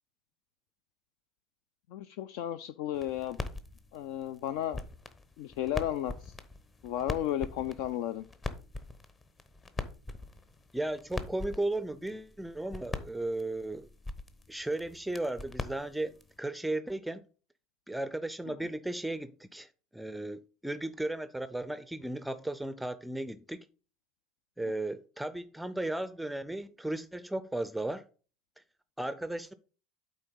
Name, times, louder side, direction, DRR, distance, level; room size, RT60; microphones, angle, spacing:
voice 1, 1.9-3.4 3.9-4.8 5.4-6.3 6.8-8.2, left 12 dB, 60° left, 0.4 m, -34 dB
sound 1, 2.9-16.4, left 2 dB, 25° left, 0.9 m, -43 dB
voice 2, 10.7-13.9 14.5-17.2 17.9-23.7 24.6-28.0 29.0-29.5, right 1 dB, 5° right, 0.4 m, -35 dB
8.7 x 3.9 x 5.4 m
figure-of-eight pair, 75°, 0 cm